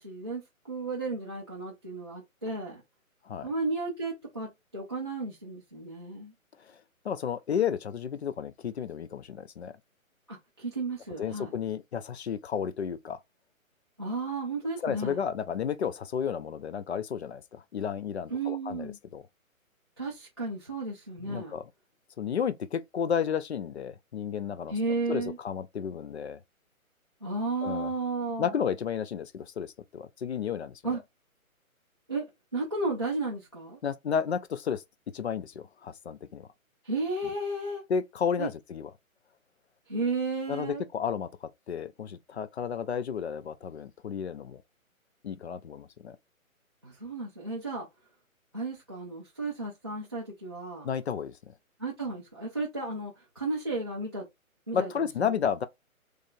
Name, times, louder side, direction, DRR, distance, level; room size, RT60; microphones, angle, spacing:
voice 1, 0.0-2.8 3.4-6.3 10.3-11.5 14.0-15.2 18.3-19.0 20.0-21.5 24.7-25.4 27.2-28.6 30.8-31.0 32.1-32.3 32.5-33.8 36.8-37.8 38.4-38.5 39.9-40.8 46.8-47.9 48.5-50.9 51.8-54.3 54.7-55.4, right 3 dB, 20° right, 0.4 m, -33 dB
voice 2, 7.0-9.7 11.2-13.2 14.8-19.2 21.2-21.7 22.2-24.7 25.1-26.4 27.6-27.9 28.4-30.8 33.8-34.8 35.1-36.5 37.9-38.9 40.5-44.6 45.2-46.2 50.8-51.5 54.7-55.7, left 7 dB, 50° left, 0.4 m, -32 dB
3.5 x 3.3 x 2.5 m
hypercardioid pair, 145°, 42 cm